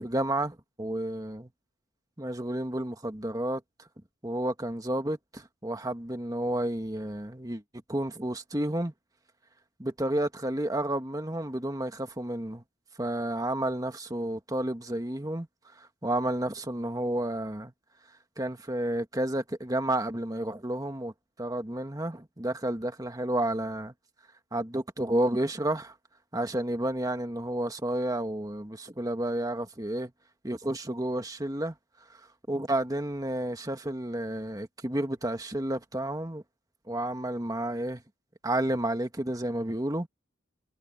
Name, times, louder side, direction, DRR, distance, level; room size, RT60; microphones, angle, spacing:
voice 1, 0.0-1.5 2.2-3.6 4.2-7.6 7.9-8.9 9.8-12.6 13.0-15.5 15.8-17.7 18.4-21.1 21.4-23.9 24.5-26.0 26.3-30.1 30.4-31.8 32.5-36.4 36.9-38.0 38.4-40.1, right 1 dB, 20° right, 1.8 m, -31 dB
head